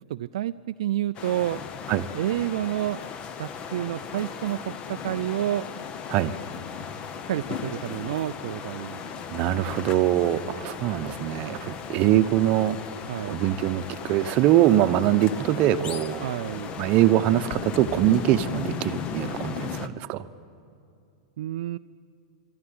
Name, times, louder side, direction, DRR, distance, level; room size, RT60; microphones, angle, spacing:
voice 1, 0.1-1.6 2.1-3.0 3.4-5.7 7.3-9.2 9.5-9.9 13.1-13.4 16.2-16.7 21.4-21.8, right 13 dB, 70° right, 9 dB, 0.4 m, -29 dB
sound 1, 1.1-19.9, left 7 dB, 30° left, 1.0 m, -37 dB
voice 2, 9.3-12.8 13.3-16.3 16.8-20.2, right 13 dB, 40° right, 10 dB, 0.8 m, -23 dB
23.0 x 13.0 x 9.6 m, 2.6 s
hypercardioid pair, 125°, 3 cm